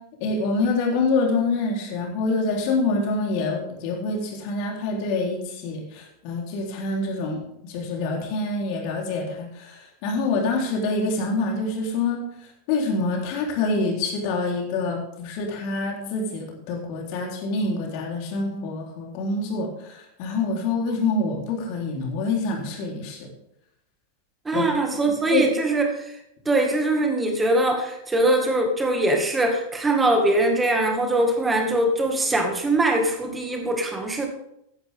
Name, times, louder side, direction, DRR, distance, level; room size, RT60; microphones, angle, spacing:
voice 1, 0.2-12.2 12.7-23.2 24.5-24.7 25.3-25.5, left 3 dB, 45° left, 0 dB, 3.8 m, -26 dB
voice 2, 24.5-26.1 26.5-34.3, right 2 dB, 10° right, 3 dB, 2.1 m, -22 dB
15.5 x 11.0 x 3.7 m, 0.80 s
figure-of-eight pair, 90°, 0 cm